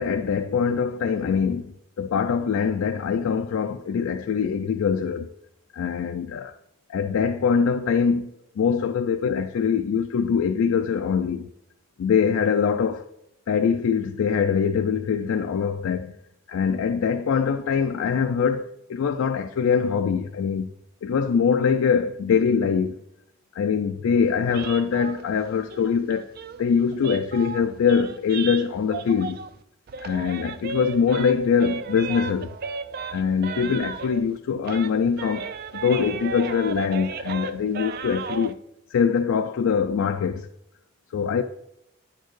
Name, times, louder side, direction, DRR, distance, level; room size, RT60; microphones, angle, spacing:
voice 1, 0.0-5.3 5.7-6.5 6.9-11.5 12.0-13.1 13.5-16.2 16.5-20.7 21.0-23.0 23.5-26.3 26.6-29.4 30.0-32.5 33.1-35.5 35.7-38.6 38.9-40.5 41.1-41.4, left 6 dB, 80° left, 0.3 m, -23 dB
sound 1, 24.5-29.6 29.9-34.4 34.6-38.5, right 5 dB, 45° right, 0.3 m, -35 dB
10.0 x 4.4 x 3.1 m
head